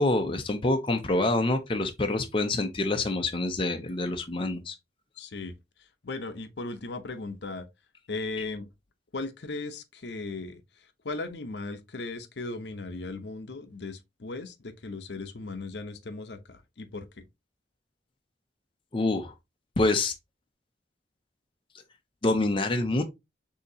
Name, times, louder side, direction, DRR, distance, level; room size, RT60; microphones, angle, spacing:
voice 1, 0.0-4.8 18.9-19.3 19.8-20.1 22.2-23.0, left 2 dB, 30° left, 0.6 m, -26 dB
voice 2, 5.2-5.6 6.0-7.7 8.1-8.7 9.1-10.6 11.0-17.1, left 3 dB, 65° left, 0.7 m, -37 dB
6.5 x 2.8 x 2.7 m
head